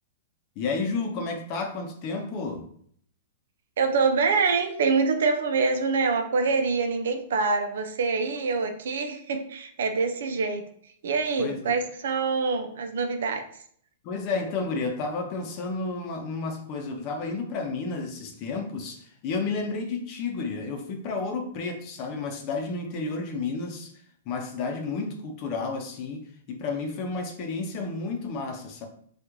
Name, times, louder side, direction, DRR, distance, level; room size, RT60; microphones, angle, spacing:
voice 1, 0.6-2.7 11.4-11.8 14.0-23.9 24.3-28.9, left 4 dB, 45° left, 4 dB, 0.7 m, -31 dB
voice 2, 3.8-10.6 11.0-13.5, right 4 dB, 75° right, 6 dB, 0.5 m, -25 dB
2.9 x 2.4 x 3.6 m, 0.62 s
hypercardioid pair, 120°, 0 cm